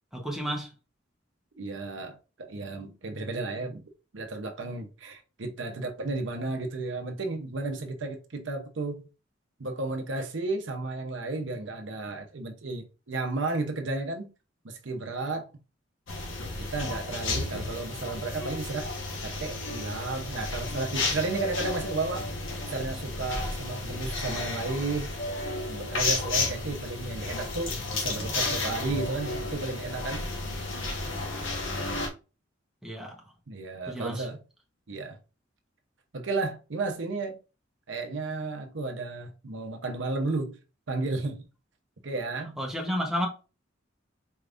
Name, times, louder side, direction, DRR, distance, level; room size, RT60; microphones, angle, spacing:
voice 1, 0.1-0.7 32.8-33.2 33.9-34.3 42.6-43.3, equal, ahead, 1.0 m, -31 dB
voice 2, 1.6-3.8 4.1-9.1 9.6-14.3 14.6-15.5 16.6-18.9 19.2-22.3 22.7-25.2 25.7-30.3 33.5-34.4 34.9-35.2 36.1-37.4 37.9-40.6 40.9-41.4 42.0-42.5, right 3 dB, 70° right, 0.8 m, -33 dB
sound 1, 16.1-32.1, left 3 dB, 80° left, 1.3 m, -33 dB
sound 2, 18.3-32.0, equal, 55° left, 1.5 m, -42 dB
4.6 x 3.5 x 2.5 m
head